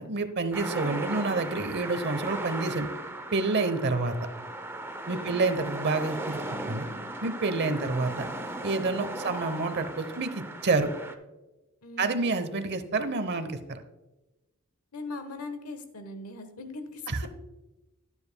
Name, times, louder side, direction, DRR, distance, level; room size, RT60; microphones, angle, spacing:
voice 1, 0.0-2.9 3.3-4.1 5.1-6.4 6.7-6.9 7.2-8.2 8.6-10.9 12.0-13.8 17.1-17.3, right 3 dB, 50° right, 10 dB, 0.8 m, -28 dB
sound 1, 0.5-11.1, right 1 dB, 10° right, 0.6 m, -37 dB
voice 2, 5.1-5.4 7.6-7.9 8.9-9.3 11.8-12.2 14.9-17.3, left 2 dB, 80° left, 8 dB, 1.1 m, -41 dB
12.0 x 9.7 x 2.2 m, 1.1 s
head